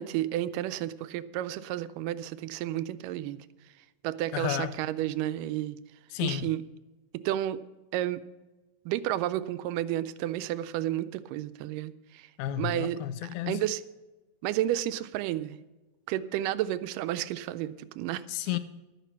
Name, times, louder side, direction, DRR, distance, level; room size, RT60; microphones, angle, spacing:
voice 1, 0.0-3.5 4.0-5.8 6.2-6.6 7.1-7.6 7.9-8.2 8.9-12.3 12.6-13.0 13.5-13.8 14.4-15.6 16.1-18.2, right 13 dB, 85° right, 13 dB, 2.1 m, -31 dB
voice 2, 4.3-4.7 6.1-6.5 12.4-13.6 18.3-18.6, left 12 dB, 80° left, 12 dB, 1.7 m, -32 dB
12.0 x 9.2 x 5.8 m, 1.1 s
omnidirectional pair, 3.8 m